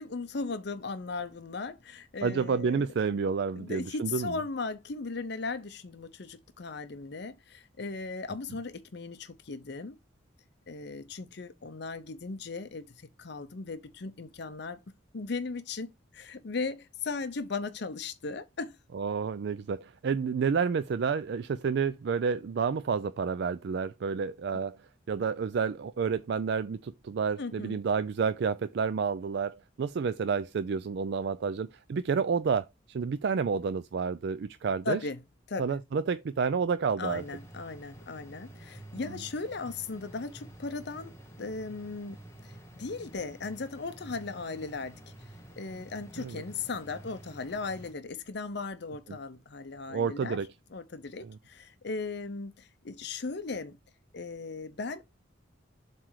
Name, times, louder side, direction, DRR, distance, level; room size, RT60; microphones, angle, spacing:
voice 1, 0.0-2.9 3.6-10.0 10.7-14.8 15.1-18.8 27.4-27.8 34.8-35.2 35.5-35.8 37.0-45.0 45.6-50.4 50.7-53.8 54.1-55.1, left 4 dB, 60° left, 0.7 m, -37 dB
voice 2, 2.2-4.3 18.9-24.8 25.1-35.0 35.6-37.2 39.0-39.2 46.2-46.4 49.9-50.5 51.3-51.4, right 5 dB, 60° right, 0.4 m, -30 dB
sound 1, 37.0-47.9, right 1 dB, 15° left, 1.3 m, -50 dB
7.5 x 3.2 x 4.7 m
head